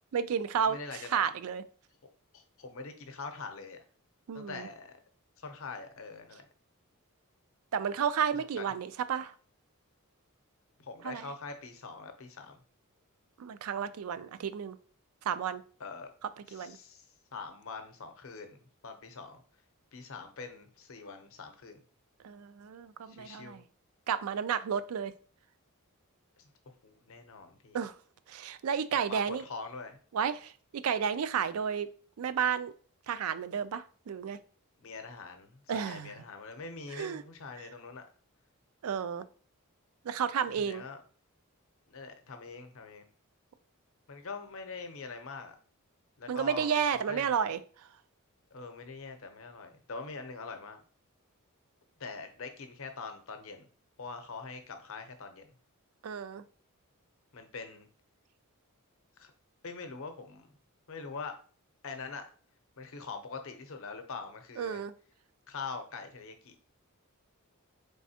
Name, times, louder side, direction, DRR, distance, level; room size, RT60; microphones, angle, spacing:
voice 1, 0.1-1.6 4.3-4.7 7.7-9.3 11.0-11.2 13.4-14.8 15.3-15.6 16.5-16.8 22.2-23.6 24.1-25.1 27.7-27.9 28.3-29.4 30.1-31.9 32.2-32.7 33.1-34.4 35.7-36.2 36.9-37.2 38.8-39.3 40.0-40.8 46.3-47.6 56.0-56.4 64.6-64.9, right 7 dB, 75° right, 13 dB, 0.4 m, -32 dB
voice 2, 0.6-1.3 2.3-3.8 4.3-5.0 5.4-6.5 8.6-8.7 10.8-12.6 15.8-16.1 16.5-17.0 17.3-19.4 19.9-21.8 23.1-23.6 26.4-26.5 26.8-27.8 29.0-30.0 34.8-38.0 40.6-41.0 41.9-43.1 44.1-45.6 46.2-47.5 48.5-50.8 52.0-53.7 54.0-55.5 57.3-57.9 59.2-59.3 59.6-60.5 60.9-61.3 61.8-62.2 62.8-64.8 65.5-66.6, left 4 dB, 65° left, 7 dB, 0.7 m, -43 dB
4.1 x 3.4 x 2.8 m, 0.41 s
head